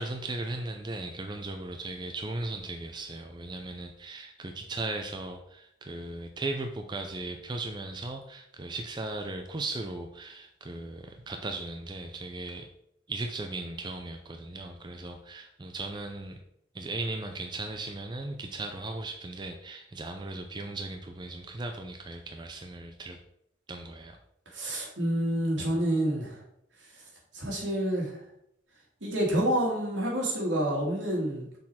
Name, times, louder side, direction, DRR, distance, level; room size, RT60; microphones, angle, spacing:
voice 1, 0.0-12.7 13.1-16.4 16.7-23.2 23.7-24.2, right 2 dB, 25° right, 4 dB, 0.5 m, -37 dB
voice 2, 24.5-26.4 27.3-28.2 29.0-31.6, right 1 dB, 85° right, -3 dB, 2.1 m, -28 dB
6.3 x 4.0 x 4.2 m, 0.75 s
head